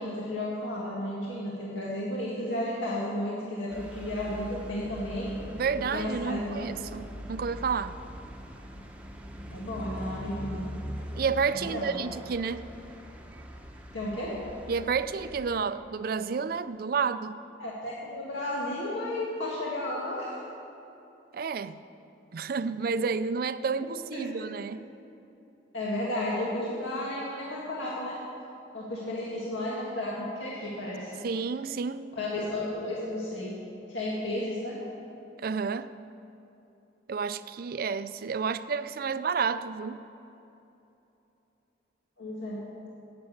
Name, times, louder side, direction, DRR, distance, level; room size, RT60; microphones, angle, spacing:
voice 1, 0.0-5.3 5.9-6.7 9.5-10.6 11.5-11.9 13.9-14.3 17.6-20.4 24.1-24.3 25.7-28.2 28.7-31.1 32.2-33.5 33.9-34.8 42.2-42.6, left 1 dB, 85° left, 2.0 m, -33 dB
sound 1, 3.7-15.6, equal, 5° right, 0.8 m, -42 dB
voice 2, 5.5-8.0 11.1-12.7 14.7-17.4 21.3-21.8 22.3-24.9 31.2-32.2 35.4-35.9 37.1-40.0, right 5 dB, 50° right, 0.4 m, -30 dB
10.5 x 8.7 x 8.6 m
head